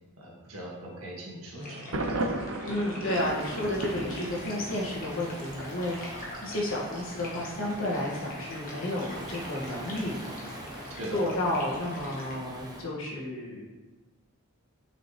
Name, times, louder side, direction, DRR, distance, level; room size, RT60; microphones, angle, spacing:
voice 1, 0.2-1.9 10.9-11.2, right 1 dB, 85° right, -4 dB, 1.8 m, -40 dB
sound 1, 1.6-12.4, left 1 dB, 40° left, 1.4 m, -44 dB
Thunder, 1.9-4.9, right 2 dB, 65° right, 0.6 m, -34 dB
voice 2, 2.6-6.0 6.4-10.1 11.1-13.6, left 1 dB, 70° left, -4 dB, 1.6 m, -31 dB
Waves surf, 3.1-12.9, right 1 dB, 20° right, 0.8 m, -44 dB
6.3 x 5.0 x 3.1 m, 1.2 s
head